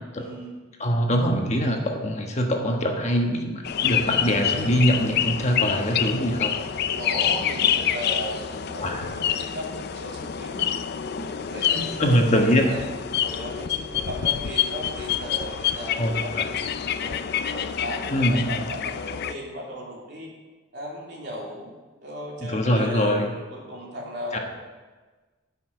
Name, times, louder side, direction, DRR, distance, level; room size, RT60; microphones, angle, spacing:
voice 1, 0.1-0.5 7.0-10.7 11.2-12.8 13.2-17.1 17.5-20.3 20.7-21.7 22.0-24.4, equal, 60° right, -3 dB, 2.9 m, -36 dB
voice 2, 0.8-6.6 8.8-9.1 11.2-11.3 11.7-12.6 16.0-16.4 18.1-18.5 22.5-23.3 24.3-24.4, equal, 40° left, 2 dB, 1.3 m, -23 dB
sound 1, 3.6-19.3, left 9 dB, 60° left, 0.5 m, -27 dB
10.5 x 5.7 x 7.9 m, 1.3 s
head